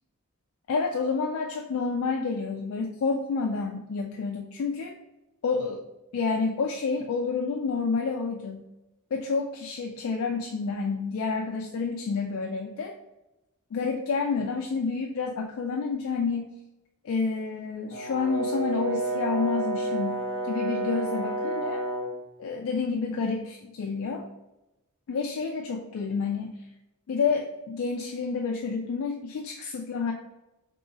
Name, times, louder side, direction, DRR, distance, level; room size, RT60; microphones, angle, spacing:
voice 1, 0.7-4.9 5.4-5.8 6.1-8.7 9.1-12.9 13.7-16.5 17.0-21.8 22.4-24.3 25.1-26.6 27.1-30.1, left 4 dB, 65° left, 1 dB, 0.4 m, -29 dB
Brass instrument, 17.9-22.1, right 1 dB, 80° right, 1.2 m, -30 dB
3.0 x 2.8 x 3.7 m, 0.95 s
head